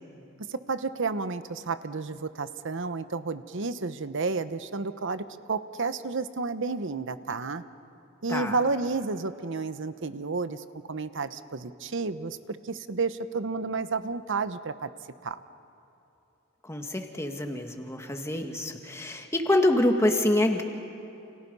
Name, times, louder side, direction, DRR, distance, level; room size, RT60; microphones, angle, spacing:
voice 1, 0.5-7.6 8.2-12.4 12.6-14.9 15.2-15.4, right 4 dB, 60° right, 12 dB, 0.9 m, -31 dB
voice 2, 16.6-20.6, left 1 dB, 15° left, 4 dB, 1.8 m, -26 dB
30.0 x 29.0 x 5.5 m, 2.9 s
head